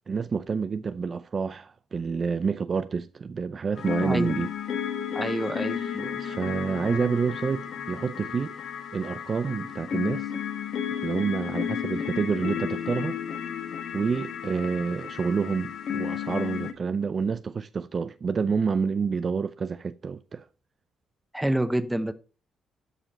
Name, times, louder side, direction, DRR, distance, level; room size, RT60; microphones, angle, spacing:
voice 1, 0.1-4.5 5.8-8.6 8.9-10.3 10.9-13.2 13.9-20.5, right 5 dB, 40° right, 0.5 m, -28 dB
sound 1, 3.8-16.7, left 8 dB, 70° left, 1.3 m, -33 dB
voice 2, 4.0-4.3 5.1-6.1 21.3-22.1, right 1 dB, 10° right, 1.0 m, -27 dB
13.0 x 4.8 x 4.2 m
cardioid pair, 90°, 0 cm